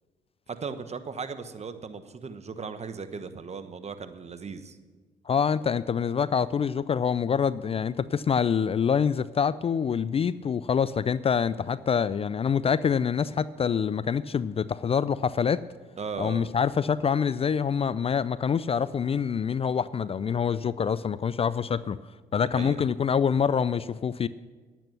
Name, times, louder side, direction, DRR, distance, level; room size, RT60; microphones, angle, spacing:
voice 1, 0.5-4.8 16.0-16.5 22.5-22.8, right 5 dB, 40° right, 10 dB, 1.1 m, -37 dB
voice 2, 5.3-15.6 16.2-22.0 22.3-24.3, left 7 dB, 35° left, 17 dB, 0.4 m, -26 dB
10.5 x 9.1 x 6.7 m, 1.3 s
supercardioid pair, 60°, 18 cm